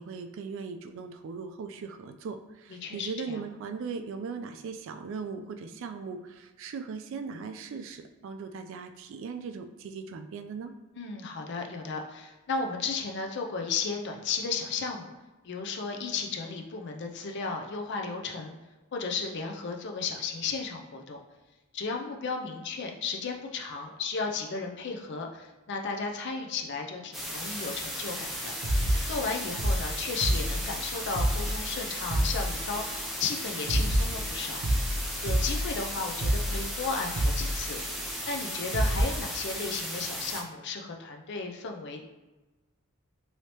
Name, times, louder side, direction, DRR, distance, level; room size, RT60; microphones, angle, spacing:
voice 1, 0.0-10.7, right 5 dB, 65° right, 7 dB, 0.3 m, -39 dB
voice 2, 2.8-3.4 11.0-15.1 15.4-18.6 18.9-21.2 21.7-28.5 29.1-32.8 33.2-34.6 35.2-37.8 38.3-42.1, left 4 dB, 55° left, 3 dB, 0.5 m, -34 dB
sound 1, 27.1-40.4, equal, ahead, 0.4 m, -36 dB
sound 2, 28.3-28.4 28.6-29.3 29.6-33.1 33.4-38.2 38.4-38.5 38.7-39.0, equal, 85° right, 0.7 m, -29 dB
3.2 x 2.7 x 2.9 m, 1.2 s
head